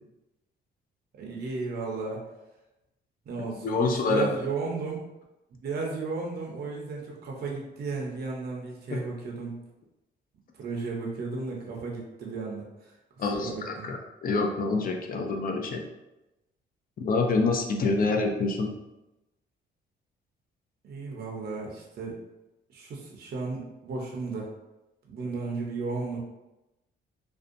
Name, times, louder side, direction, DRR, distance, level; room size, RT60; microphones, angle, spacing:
voice 1, 1.1-2.2 3.3-5.0 5.6-9.6 10.6-12.9 13.3-13.9 20.8-22.2 22.7-24.5 25.1-26.2, right 4 dB, 55° right, -2 dB, 0.6 m, -34 dB
voice 2, 3.6-4.3 8.9-9.0 13.2-15.8 17.0-18.7, left 3 dB, 45° left, 3 dB, 0.5 m, -26 dB
2.5 x 2.2 x 2.5 m, 0.98 s
cardioid pair, 90°, 20 cm